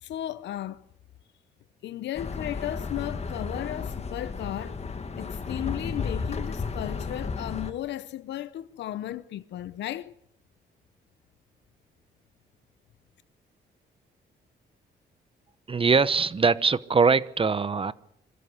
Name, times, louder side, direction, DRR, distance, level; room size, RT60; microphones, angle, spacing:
voice 1, 0.0-0.8 1.8-4.8 5.1-10.1, left 13 dB, 75° left, 0.7 m, -35 dB
sound 1, 2.1-7.7, left 4 dB, 35° left, 1.9 m, -33 dB
voice 2, 15.7-17.9, right 5 dB, 30° right, 0.9 m, -22 dB
25.5 x 13.5 x 8.2 m
cardioid pair, 85°, 18 cm